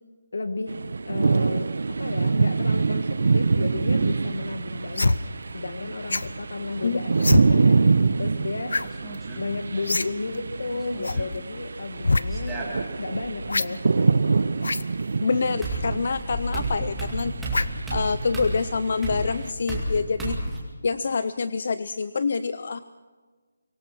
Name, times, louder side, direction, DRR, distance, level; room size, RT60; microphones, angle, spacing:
voice 1, 0.3-7.9 8.2-8.8 9.4-12.7 12.9-13.8, left 3 dB, 60° left, 10 dB, 1.7 m, -33 dB
sound 1, 0.7-19.5, right 4 dB, 50° right, 0.7 m, -26 dB
sound 2, 5.0-5.2 6.1-6.3 7.2-7.4 8.7-8.9 9.1-9.2 9.9-10.1 10.3-10.4 11.0-11.2 12.0-12.2 13.5-13.7 14.6-14.9 15.7-15.8 17.5-17.8 18.3-18.4, left 2 dB, 80° left, 0.9 m, -23 dB
sound 3, 8.8-9.4 10.7-11.3 12.3-13.3 15.0-15.1 15.6-20.6, right 1 dB, 5° right, 2.3 m, -32 dB
voice 2, 15.2-17.4 17.9-20.6 20.8-22.8, left 4 dB, 40° left, 14 dB, 0.5 m, -26 dB
24.5 x 18.0 x 6.0 m, 1.4 s
hypercardioid pair, 180°, 0 cm